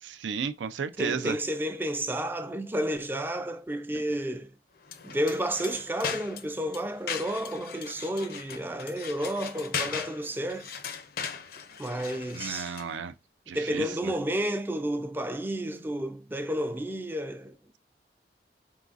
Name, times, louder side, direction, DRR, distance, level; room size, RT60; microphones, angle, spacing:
voice 1, 0.0-1.4 3.9-4.0 12.3-13.1 13.5-14.1, right 6 dB, 90° right, 0.4 m, -34 dB
voice 2, 1.0-4.5 5.0-10.7 11.8-12.8 13.5-17.6, right 1 dB, 10° right, 0.3 m, -31 dB
sound 1, 4.8-13.0, left 6 dB, 55° left, 0.5 m, -38 dB
3.9 x 3.7 x 2.4 m
head